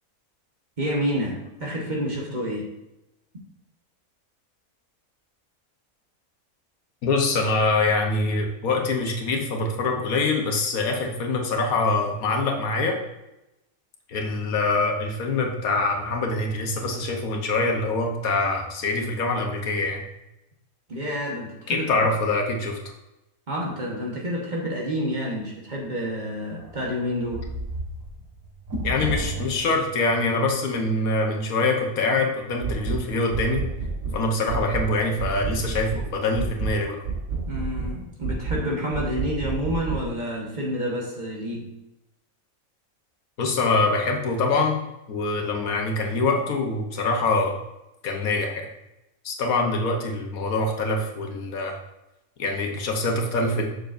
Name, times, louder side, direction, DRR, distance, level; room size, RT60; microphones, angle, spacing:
voice 1, 0.8-2.7 20.9-22.1 23.5-27.5 37.5-41.7, equal, 35° right, -2 dB, 1.2 m, -29 dB
voice 2, 7.0-13.0 14.1-20.0 21.7-22.8 28.8-33.6 34.1-37.0 43.4-44.8 45.1-47.6 48.0-48.7 49.2-51.8 52.4-53.7, left 3 dB, 80° left, 2 dB, 1.4 m, -24 dB
sound 1, 26.6-30.0, right 1 dB, 75° right, 1.8 m, -32 dB
sound 2, 32.6-33.0 33.3-34.2 34.5-34.9 35.2-36.0 36.3-36.7 37.0-37.9 38.2-38.6 38.9-40.0, right 4 dB, 60° right, 1.9 m, -29 dB
6.9 x 6.5 x 2.5 m, 0.92 s
omnidirectional pair, 1.5 m